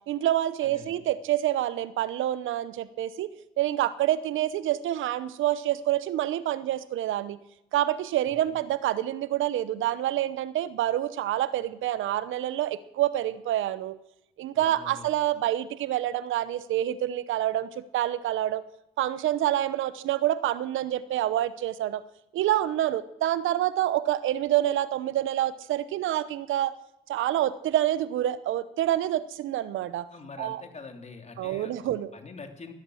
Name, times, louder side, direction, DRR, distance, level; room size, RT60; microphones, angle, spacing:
voice 1, 0.1-3.3 3.6-7.4 7.7-13.9 14.4-18.6 19.0-22.0 22.3-26.7 27.1-30.1 30.4-30.6 31.4-32.1, right 13 dB, 80° right, 16 dB, 0.9 m, -27 dB
voice 2, 0.6-0.9 8.5-8.6 14.5-15.1 30.1-32.7, left 4 dB, 35° left, 6 dB, 3.0 m, -44 dB
17.0 x 12.5 x 6.4 m, 0.85 s
cardioid pair, 90°, 20 cm